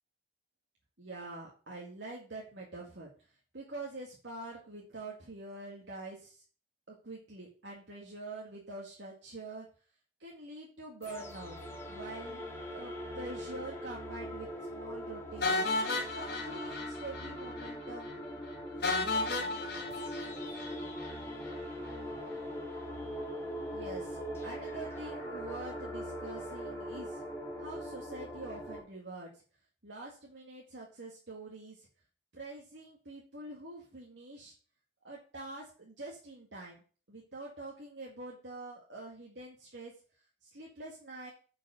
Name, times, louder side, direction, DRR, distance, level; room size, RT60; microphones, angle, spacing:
voice 1, 1.0-3.1 3.5-6.4 6.9-9.7 10.2-11.6 11.9-12.4 12.7-15.6 16.1-18.2 23.7-27.2 27.6-29.3 29.8-31.9 32.3-34.5 35.0-36.8 37.1-39.9 40.4-41.3, right 2 dB, 70° right, -2 dB, 2.1 m, -45 dB
sound 1, 11.0-28.8, equal, 15° left, 2.3 m, -41 dB
sound 2, 15.4-17.3 17.6-17.7 18.0-18.1 18.8-21.1, left 3 dB, 60° left, 3.3 m, -33 dB
9.5 x 5.3 x 6.5 m, 0.39 s
head